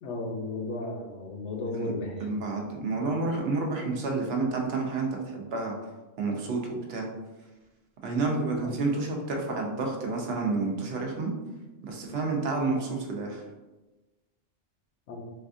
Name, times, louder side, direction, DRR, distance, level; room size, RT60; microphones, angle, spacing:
voice 1, 0.0-2.3 8.5-8.7 15.1-15.2, left 2 dB, 70° left, 1 dB, 0.9 m, -34 dB
voice 2, 2.2-5.8 6.2-7.1 8.0-11.3 11.9-13.4, right 3 dB, 60° right, 0 dB, 0.8 m, -29 dB
4.2 x 2.3 x 2.5 m, 1.1 s
omnidirectional pair, 1.3 m